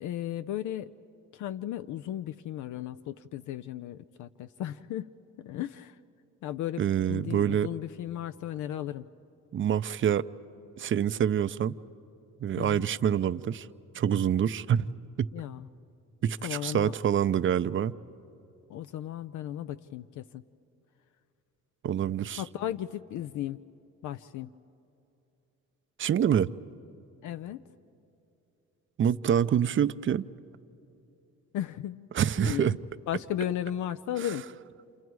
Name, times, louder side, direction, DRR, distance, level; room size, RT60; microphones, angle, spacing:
voice 1, 0.0-0.9 1.3-6.0 6.4-6.8 7.1-9.0 12.6-12.9 15.3-15.7 16.4-16.9 18.7-20.4 22.4-23.6 24.0-24.5 27.2-27.6 31.5-32.1 32.4-32.8 33.1-34.4, left 11 dB, 75° left, 0.5 m, -35 dB
voice 2, 6.8-7.7 9.5-10.3 10.8-11.7 12.4-13.7 13.9-14.9 16.2-17.9 21.8-22.4 26.0-26.5 29.0-30.3 32.1-32.8, right 9 dB, 40° right, 0.5 m, -26 dB
29.5 x 27.5 x 4.7 m
cardioid pair, 90°, 30 cm